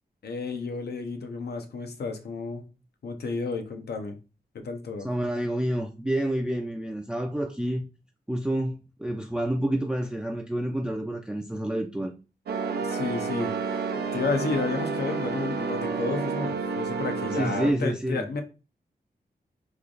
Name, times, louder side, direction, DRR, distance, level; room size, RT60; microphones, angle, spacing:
voice 1, 0.2-2.6 3.0-4.2 4.5-5.1 12.8-18.4, left 4 dB, 80° left, 0.7 m, -32 dB
voice 2, 5.0-7.8 8.3-12.1 17.3-18.3, right 1 dB, 5° right, 0.4 m, -28 dB
sound 1, 12.5-17.7, right 4 dB, 80° right, 0.5 m, -30 dB
3.2 x 2.4 x 3.8 m
wide cardioid pair, 105°, 16 cm